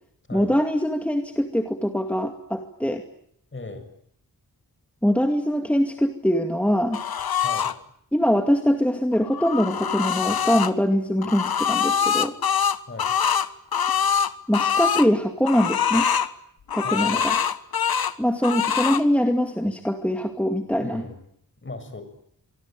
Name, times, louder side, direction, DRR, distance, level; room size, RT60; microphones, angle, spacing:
voice 1, 0.3-3.0 5.0-7.0 8.1-12.3 14.5-16.0 16.7-17.4 18.2-21.0, equal, 5° left, 5 dB, 2.3 m, -23 dB
voice 2, 3.5-3.9 7.4-7.8 12.9-13.1 16.8-17.3 20.8-21.3 21.6-22.0, left 3 dB, 35° left, 8 dB, 7.0 m, -37 dB
sound 1, 6.9-7.7 9.1-10.7 11.2-15.1 15.4-16.3 16.7-18.1 18.4-19.0, left 7 dB, 80° left, 1.4 m, -24 dB
26.0 x 25.0 x 9.2 m, 0.70 s
wide cardioid pair, 115°, 36 cm